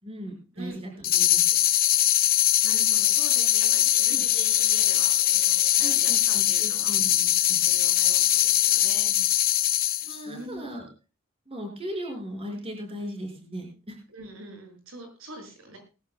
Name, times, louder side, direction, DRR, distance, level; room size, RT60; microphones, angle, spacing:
voice 1, 0.0-1.6 4.1-4.3 5.8-7.7 10.0-10.9 11.5-14.0, equal, 30° right, 2 dB, 5.5 m, -38 dB
voice 2, 0.5-1.1 2.6-6.9 7.5-9.1 10.3-10.7 14.1-15.8, right 2 dB, 85° right, 3 dB, 6.7 m, -43 dB
sound 1, 1.0-10.2, left 13 dB, 45° left, 0.6 m, -22 dB
Crash cymbal, 2.9-7.9, left 8 dB, 90° left, 1.9 m, -49 dB
20.0 x 16.5 x 2.2 m, 0.33 s
head